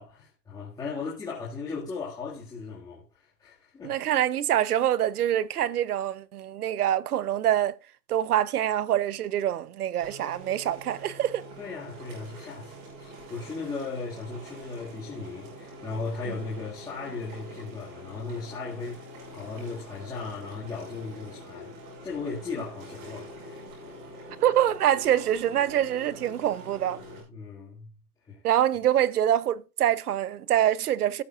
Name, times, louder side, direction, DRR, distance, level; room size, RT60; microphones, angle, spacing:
voice 1, 0.0-3.9 11.6-23.6 23.9-24.0 27.3-27.9 28.3-28.4, left 4 dB, 10° left, 2.2 m, -37 dB
voice 2, 3.8-7.7 8.1-11.4 16.3-16.4 24.4-27.0 28.4-31.2, right 11 dB, 65° right, 0.9 m, -25 dB
sound 1, 10.0-27.2, equal, 30° right, 5.6 m, -45 dB
17.0 x 7.0 x 2.5 m
hypercardioid pair, 170°, 49 cm